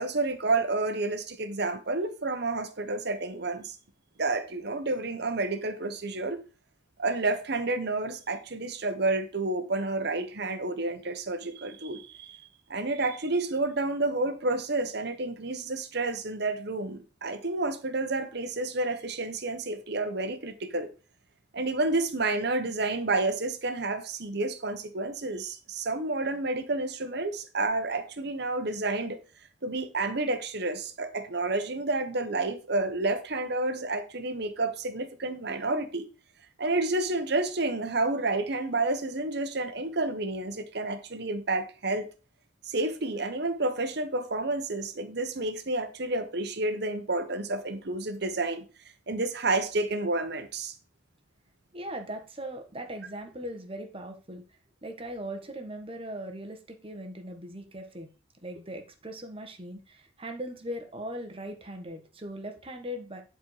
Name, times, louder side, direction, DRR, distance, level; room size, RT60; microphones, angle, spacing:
voice 1, 0.0-3.7 4.2-6.4 7.0-12.4 12.7-20.9 21.5-29.2 29.6-36.1 36.6-42.1 42.6-48.6 49.1-50.7, right 2 dB, 60° right, 1.2 m, -30 dB
voice 2, 51.7-54.4 54.8-58.1 58.4-63.2, equal, 30° right, 1.5 m, -39 dB
10.5 x 4.5 x 4.9 m
head